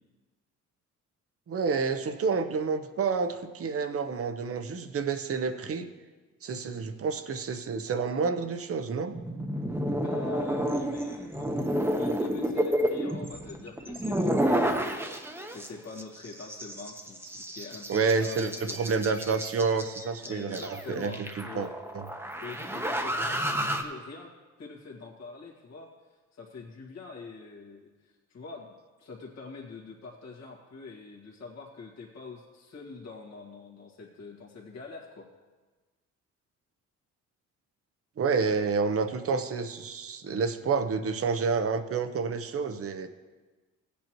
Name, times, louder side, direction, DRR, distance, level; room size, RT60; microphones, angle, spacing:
voice 1, 1.5-5.9 6.4-9.1 17.9-21.7 21.9-22.1 38.2-43.1, right 5 dB, 50° right, 10 dB, 0.9 m, -29 dB
sound 1, 9.1-15.7 16.0-23.8, equal, 10° right, 1.0 m, -31 dB
voice 2, 10.0-18.8 20.2-21.7 22.4-24.3 24.6-25.9 26.3-35.3, left 4 dB, 60° left, -3 dB, 1.8 m, -44 dB
16.0 x 8.4 x 3.0 m, 1.3 s
cardioid pair, 90°, 30 cm